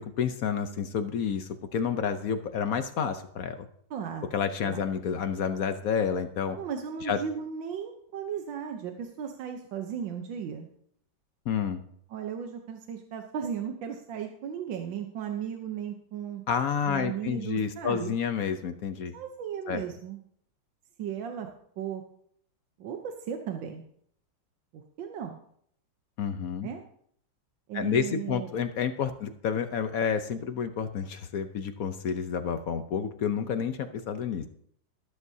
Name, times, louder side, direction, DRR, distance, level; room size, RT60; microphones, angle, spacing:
voice 1, 0.0-3.7 4.3-6.6 7.0-7.2 11.5-11.8 16.5-19.1 19.7-19.8 26.2-26.7 27.7-34.5, left 7 dB, 60° left, 9 dB, 1.0 m, -30 dB
voice 2, 3.9-4.3 4.7-4.8 6.6-10.7 12.1-16.4 16.9-18.1 19.1-20.2 21.0-21.5 21.8-22.0 22.8-23.8 25.0-25.4 26.6-26.8 27.7-28.5, right 8 dB, 85° right, 4 dB, 1.6 m, -35 dB
13.5 x 12.5 x 2.7 m, 0.66 s
omnidirectional pair, 2.0 m